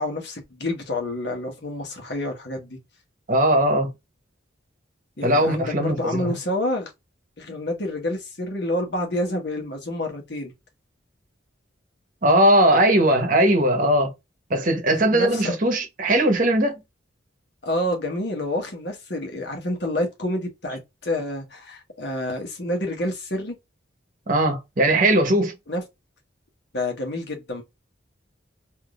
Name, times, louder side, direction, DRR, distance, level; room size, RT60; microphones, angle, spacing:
voice 1, 0.0-2.8 5.2-6.9 7.4-10.5 15.1-15.6 17.6-23.6 25.7-25.8 26.7-27.6, left 1 dB, 60° left, 1.2 m, -28 dB
voice 2, 3.3-3.9 5.2-6.4 12.2-14.1 14.5-16.8 24.3-25.5, right 1 dB, 45° right, 0.9 m, -19 dB
3.6 x 2.7 x 2.4 m
head